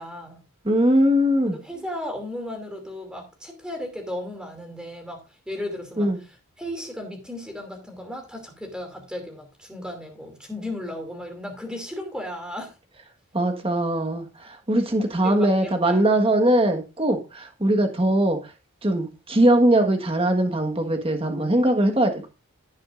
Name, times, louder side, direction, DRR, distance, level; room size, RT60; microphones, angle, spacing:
voice 1, 0.0-0.5 1.5-12.8 15.2-16.0, left 1 dB, 5° right, 2.6 m, -35 dB
voice 2, 0.6-1.6 6.0-6.2 13.3-18.4 18.8-22.3, right 1 dB, 25° right, 1.5 m, -21 dB
16.0 x 6.5 x 2.5 m
head